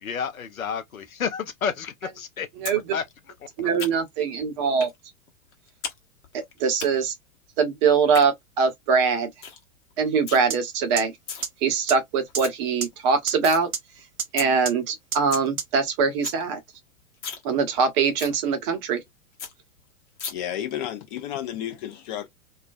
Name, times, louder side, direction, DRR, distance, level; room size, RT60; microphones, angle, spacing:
voice 1, 0.0-2.7 2.9-3.0 3.8-3.9, left 7 dB, 80° left, 0.6 m, -30 dB
sound 1, 2.6-2.8 3.1-4.2 4.8-5.0 5.3-6.0 6.2-6.9 7.9-8.3 8.7-8.8 9.1-9.2 9.4-9.6 9.9-10.4 11.0-11.4 11.9-12.0 12.2-12.5 12.9-13.6 14.0-14.1 14.4-14.5 14.9-15.0 15.1-15.5 15.8-15.9 16.1-16.4 16.7-16.8 17.1-17.4 17.8-17.9 18.2-18.4 18.8-18.9 19.1-19.2 19.4-19.5 20.2-20.3, left 6 dB, 55° left, 1.0 m, -34 dB
voice 2, 3.6-4.9 6.6-7.1 7.6-9.3 10.0-11.1 11.6-13.7 14.3-16.6 17.4-19.0, right 5 dB, 35° right, 0.7 m, -22 dB
sound 2, 10.5-10.6 11.0-11.1 11.4-11.5 11.9-12.0 12.3-12.4 12.8-12.9 13.3-13.4 13.7-13.8 14.2-14.3 14.7-14.8 15.1-15.2 15.6-15.7, right 6 dB, 75° right, 0.8 m, -27 dB
voice 3, 20.3-22.3, left 11 dB, 35° left, 0.5 m, -32 dB
2.3 x 2.2 x 2.4 m
figure-of-eight pair, 95°, 42 cm